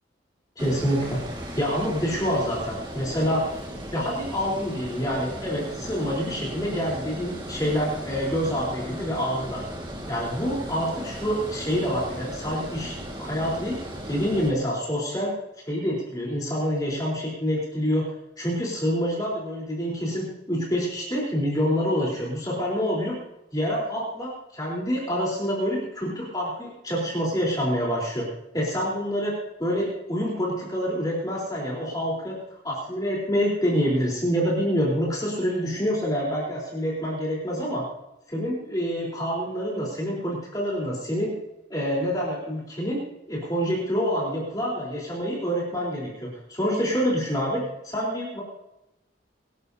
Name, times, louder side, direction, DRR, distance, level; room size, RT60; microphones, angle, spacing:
voice 1, 0.6-1.2 1.5-3.5 3.9-9.6 10.1-13.8 14.1-15.3 15.6-18.1 18.4-23.1 23.5-28.3 28.5-29.3 29.6-32.4 32.6-37.8 38.3-41.3 41.7-43.0 43.3-48.4, equal, 20° left, -5 dB, 4.1 m, -27 dB
Water, 0.6-14.5, equal, 25° right, 2.0 m, -37 dB
23.5 x 11.5 x 2.9 m, 0.91 s
head